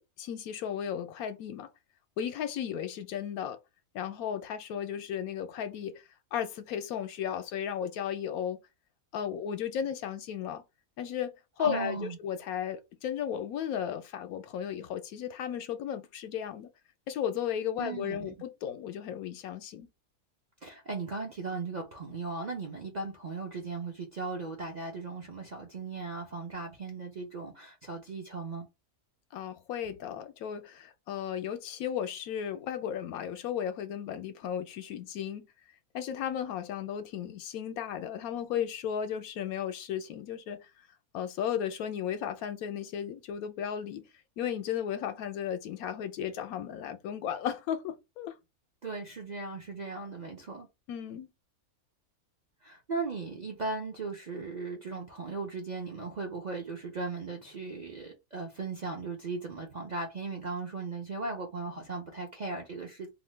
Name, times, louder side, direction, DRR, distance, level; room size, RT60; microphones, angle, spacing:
voice 1, 0.0-1.7 2.2-3.6 3.9-6.0 6.3-8.6 9.1-10.6 11.0-16.7 17.1-19.9 29.3-35.5 35.9-40.6 41.1-44.1 44.4-48.4 50.9-51.3, left 9 dB, 80° left, 1.0 m, -35 dB
voice 2, 11.6-12.2 17.8-18.3 20.6-28.7 48.8-50.7 52.6-63.1, right 3 dB, 50° right, 0.5 m, -37 dB
2.9 x 2.2 x 3.2 m
omnidirectional pair, 1.5 m